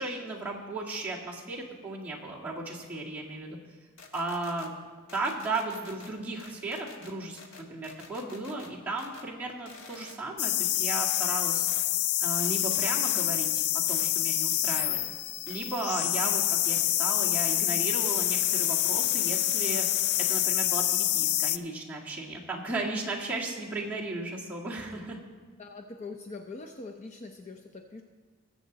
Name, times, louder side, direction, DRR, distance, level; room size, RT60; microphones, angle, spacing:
voice 1, 0.0-3.6 4.1-4.7 5.1-11.7 12.2-13.6 13.9-15.0 15.5-19.9 20.2-25.2, right 2 dB, 10° right, -6 dB, 1.9 m, -35 dB
sound 1, 4.0-4.7 5.1-6.1 6.4-8.7 9.0-9.3 9.7-10.2 11.1-11.2 11.7-11.9 12.4-13.3 13.9-14.1 14.7-14.9 15.5-15.6 15.9-16.1 16.6-16.9 17.3-17.6 18.0-20.5, left 4 dB, 70° left, 1.3 m, -49 dB
sound 2, 10.4-21.6, left 14 dB, 85° left, 0.4 m, -27 dB
voice 2, 25.6-28.0, left 3 dB, 35° left, 3 dB, 0.6 m, -43 dB
20.5 x 7.3 x 4.0 m, 1.5 s
head